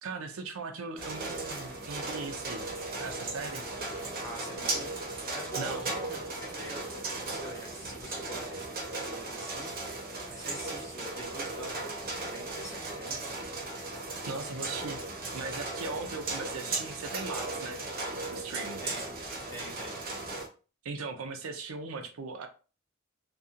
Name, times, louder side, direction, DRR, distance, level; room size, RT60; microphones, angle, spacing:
voice 1, 0.0-2.7 3.0-3.7 5.6-5.9 14.3-15.0 15.3-17.8 18.1-18.8 20.8-22.5, right 4 dB, 85° right, 6 dB, 0.5 m, -39 dB
sound 1, 1.0-20.5, right 2 dB, 45° right, 0.7 m, -37 dB
voice 2, 4.2-4.9 5.3-10.0 10.3-13.4 18.8-19.1 19.5-20.0, equal, 15° left, -1 dB, 0.7 m, -45 dB
2.7 x 2.2 x 2.4 m, 0.35 s
head